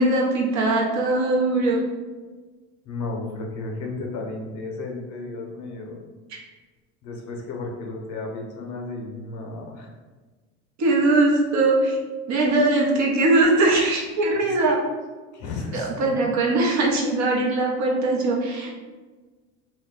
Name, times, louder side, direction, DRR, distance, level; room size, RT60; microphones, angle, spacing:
voice 1, 0.0-1.8 6.3-6.4 10.8-12.0 12.3-14.8 15.7-18.7, right 2 dB, 50° right, -2 dB, 0.8 m, -21 dB
voice 2, 2.8-6.0 7.0-9.9 14.4-14.6 15.3-16.3, left 3 dB, 50° left, 1 dB, 0.7 m, -33 dB
2.3 x 2.1 x 3.7 m, 1.3 s
supercardioid pair, 100°, 37 cm